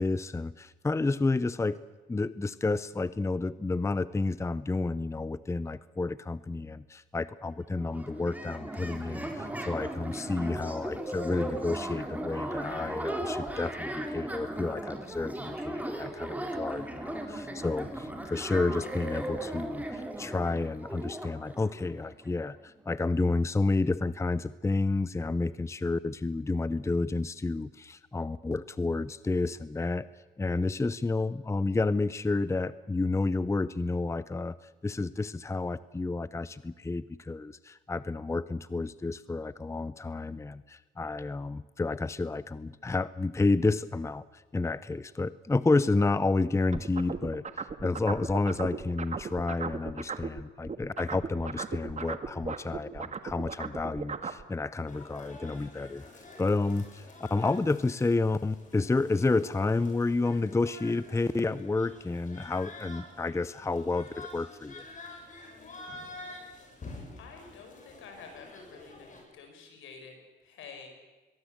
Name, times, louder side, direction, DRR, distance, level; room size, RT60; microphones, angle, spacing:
voice 1, 0.0-1.8 2.1-30.1 30.4-56.0 56.4-64.8, left 3 dB, 15° left, 16 dB, 0.7 m, -30 dB
sound 1, 7.5-7.6 7.7-22.3, right 1 dB, 10° right, 3.6 m, -37 dB
sound 2, 46.7-50.4 50.7-54.4, right 5 dB, 35° right, 1.8 m, -36 dB
sound 3, 54.9-69.2, left 2 dB, 40° left, 7.5 m, -48 dB
voice 2, 67.2-70.9, left 5 dB, 80° left, 4 dB, 6.4 m, -49 dB
22.5 x 20.5 x 8.1 m, 1.2 s
cardioid pair, 90°, 20 cm